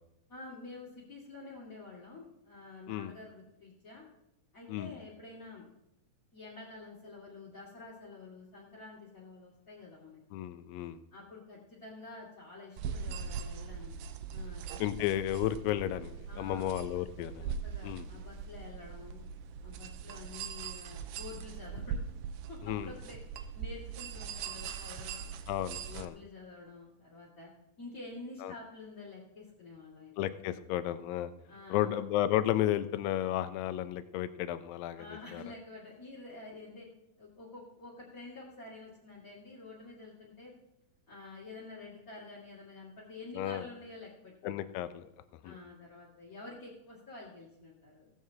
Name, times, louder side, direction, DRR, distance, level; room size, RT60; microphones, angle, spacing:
voice 1, 0.3-4.0 4.5-5.7 6.3-10.4 11.1-13.9 14.3-14.8 16.3-16.8 17.6-19.2 19.6-22.0 22.5-25.3 25.8-27.5 27.8-30.9 31.5-31.9 35.0-36.9 37.2-40.5 41.1-44.8 45.4-48.1, left 3 dB, 30° left, -7 dB, 2.0 m, -49 dB
voice 2, 10.3-11.0 14.8-17.6 17.8-18.1 22.6-22.9 25.5-26.2 28.4-28.5 30.2-31.3 31.7-35.1 35.3-35.4 43.4-43.6 44.4-45.1 45.4-45.6, left 12 dB, 80° left, 12 dB, 2.3 m, -33 dB
sound 1, 12.8-26.1, right 7 dB, 80° right, 2.0 m, -41 dB
17.0 x 14.0 x 2.8 m, 0.90 s
omnidirectional pair, 4.2 m